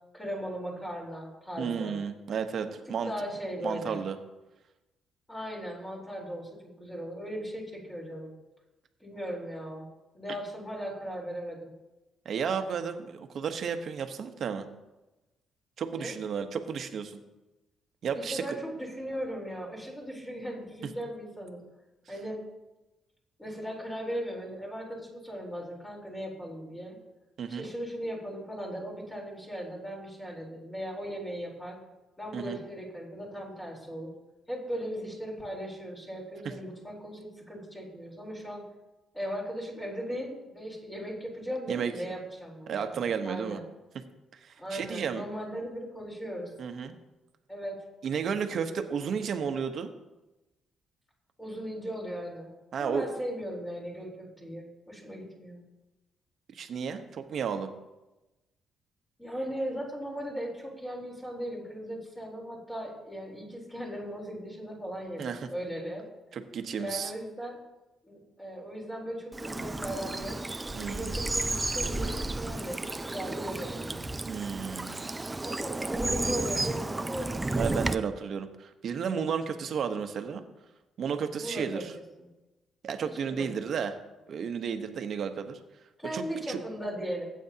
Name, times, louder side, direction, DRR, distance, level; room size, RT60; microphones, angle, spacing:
voice 1, 0.1-2.0 3.1-4.0 5.3-8.3 9.0-9.9 10.1-11.7 15.9-16.2 18.1-21.6 22.1-22.4 23.4-27.0 27.5-31.8 32.2-34.1 34.5-38.7 39.1-43.6 44.6-46.5 47.5-47.8 51.4-52.5 52.8-55.6 59.2-66.0 66.8-67.6 68.0-74.1 75.4-77.4 81.4-81.8 82.2-82.3 83.0-83.5 86.0-87.2, equal, 15° left, -3 dB, 3.7 m, -38 dB
voice 2, 1.6-3.1 3.6-4.2 12.2-14.7 15.8-17.2 18.0-18.4 27.4-27.7 32.3-32.6 41.7-42.1 42.7-43.6 44.3-45.2 46.6-46.9 48.0-49.9 52.7-53.1 56.5-57.7 65.2-65.5 66.3-67.1 70.7-71.1 74.3-75.1 77.5-80.4 81.0-81.9 82.8-84.0 84.3-85.6 86.1-86.6, right 6 dB, 60° right, 7 dB, 1.0 m, -33 dB
Bird vocalization bird call bird song / Stream, 69.3-78.0, right 2 dB, 15° right, 0.5 m, -32 dB
16.0 x 8.4 x 2.8 m, 1.0 s
cardioid pair, 90°, 0 cm